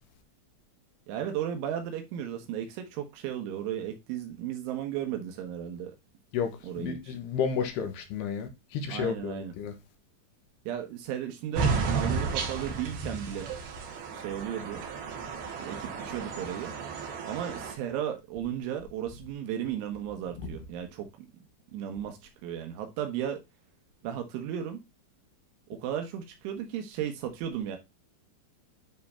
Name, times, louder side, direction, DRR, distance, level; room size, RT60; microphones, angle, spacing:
voice 1, 1.1-5.9 6.6-7.2 8.9-9.5 10.7-13.6 14.1-14.8 15.6-16.7 17.2-21.3 21.7-23.4 24.0-24.8 25.7-27.8, right 10 dB, 85° right, 3.5 m, -35 dB
voice 2, 6.3-9.7, left 7 dB, 70° left, 2.8 m, -32 dB
sound 1, 11.5-17.7, right 5 dB, 60° right, 3.2 m, -33 dB
10.5 x 3.5 x 4.2 m
omnidirectional pair, 5.4 m